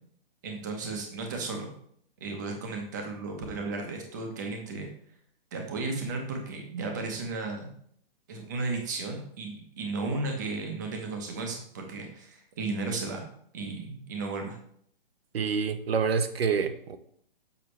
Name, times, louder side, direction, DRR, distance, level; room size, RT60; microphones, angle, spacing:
voice 1, 0.4-1.7 2.2-4.9 5.5-7.7 8.3-13.2 13.5-14.6, right 3 dB, 20° right, 0.9 m, -34 dB
voice 2, 15.3-17.0, right 6 dB, 85° right, 0.9 m, -27 dB
7.2 x 5.6 x 3.2 m
hypercardioid pair, 175°, 30 cm